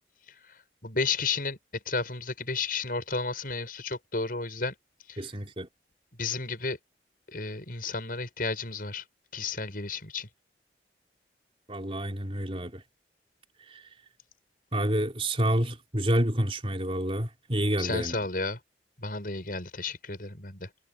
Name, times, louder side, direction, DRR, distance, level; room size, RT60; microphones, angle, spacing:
voice 1, 0.8-1.6 1.9-4.7 5.1-5.2 6.2-6.8 7.3-9.0 9.3-10.3 17.8-18.6 19.0-20.7, left 4 dB, 50° left, 8.0 m, -32 dB
voice 2, 5.2-5.7 11.7-12.8 13.7-13.8 14.7-18.1, right 1 dB, 30° right, 3.7 m, -28 dB
head